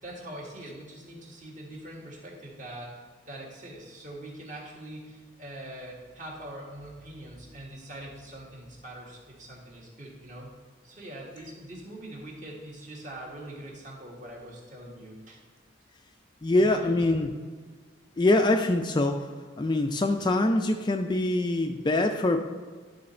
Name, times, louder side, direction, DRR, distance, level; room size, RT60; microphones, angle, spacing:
voice 1, 0.0-10.5 10.8-15.4 16.6-17.3, right 1 dB, 40° right, -3 dB, 1.6 m, -43 dB
voice 2, 16.4-17.3 18.2-19.2 19.6-22.4, left 2 dB, 25° left, 5 dB, 0.3 m, -24 dB
11.0 x 4.0 x 4.3 m, 1.5 s
head